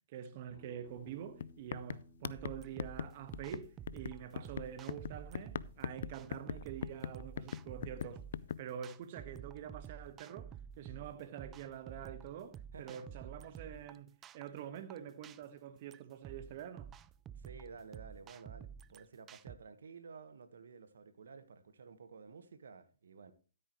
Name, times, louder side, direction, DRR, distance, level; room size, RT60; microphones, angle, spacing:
voice 1, 0.1-8.2 8.6-16.9, right 9 dB, 45° right, 1.4 m, -46 dB
Bass guitar, 0.5-4.8, left 1 dB, 35° left, 5.8 m, -63 dB
sound 1, 1.0-1.1 1.4-8.6, left 8 dB, 65° left, 0.4 m, -41 dB
sound 2, 2.4-19.6, right 8 dB, 20° right, 0.5 m, -51 dB
voice 2, 12.7-13.1 17.4-23.3, right 5 dB, 75° right, 1.4 m, -53 dB
13.5 x 8.5 x 3.1 m
hypercardioid pair, 135°, 0 cm